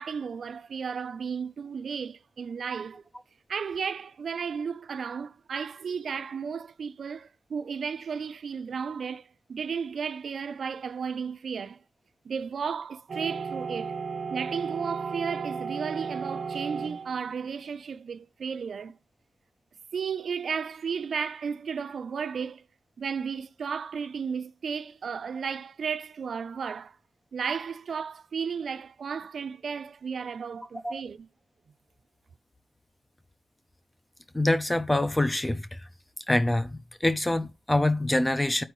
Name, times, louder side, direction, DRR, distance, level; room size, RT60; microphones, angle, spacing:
voice 1, 0.0-3.0 3.5-11.8 12.3-13.9 14.3-18.9 19.9-22.6 23.0-26.9 27.3-31.3, right 6 dB, 65° right, 0.5 m, -34 dB
sound 1, 13.1-17.4, right 5 dB, 50° right, 0.9 m, -34 dB
voice 2, 34.3-35.8 36.3-38.6, left 1 dB, 15° left, 0.6 m, -25 dB
13.0 x 4.4 x 3.1 m
wide cardioid pair, 100°, 0 cm